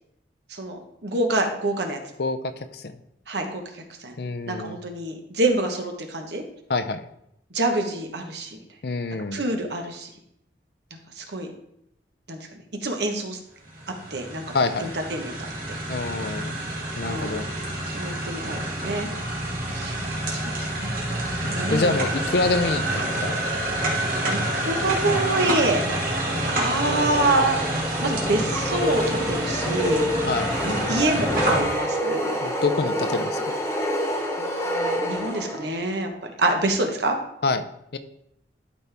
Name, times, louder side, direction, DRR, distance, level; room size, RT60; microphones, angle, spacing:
voice 1, 0.5-2.0 3.3-3.6 4.0-4.1 4.5-6.4 7.5-8.6 9.3-10.1 11.2-11.5 12.3-12.5 12.8-13.4 14.1-14.5 15.1-15.3 17.0-17.5 17.9-19.1 19.7-21.0 21.5-21.9 24.3-25.8 26.5-27.6 28.0-30.1 30.6-32.4 34.4-36.1 36.4-37.2, right 2 dB, 70° right, 3 dB, 1.2 m, -26 dB
voice 2, 2.2-3.0 4.2-4.8 6.7-7.1 8.8-9.4 14.5-14.9 15.9-16.6 17.0-17.5 21.7-23.5 30.3-30.5 32.4-33.5 37.4-37.7 37.9-38.0, left 3 dB, 60° left, 10 dB, 0.5 m, -26 dB
sound 1, 13.6-31.6, right 1 dB, 50° right, 1.8 m, -28 dB
sound 2, 26.8-35.9, equal, 15° left, 0.9 m, -27 dB
12.0 x 4.3 x 3.5 m, 0.77 s
head